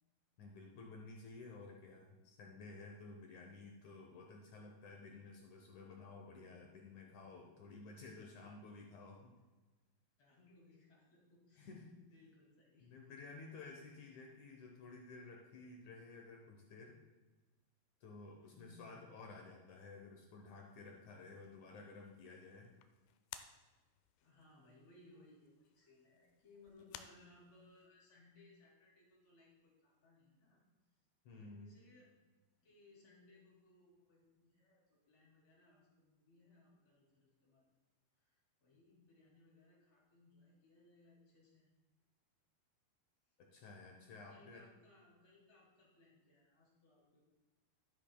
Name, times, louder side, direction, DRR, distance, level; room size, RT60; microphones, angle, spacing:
voice 1, 0.4-9.3 11.6-12.0 12.8-17.0 18.0-22.7 31.3-31.7 43.4-44.7, left 3 dB, 70° left, 1 dB, 1.8 m, -54 dB
voice 2, 8.0-9.1 10.2-13.0 18.4-19.3 24.2-30.6 31.3-32.1 32.6-37.7 38.2-41.7 44.3-47.2, left 2 dB, 45° left, -3 dB, 3.1 m, -65 dB
sound 1, 20.7-27.9, left 10 dB, 90° left, 2.6 m, -59 dB
11.5 x 10.5 x 2.3 m, 1.2 s
omnidirectional pair, 4.5 m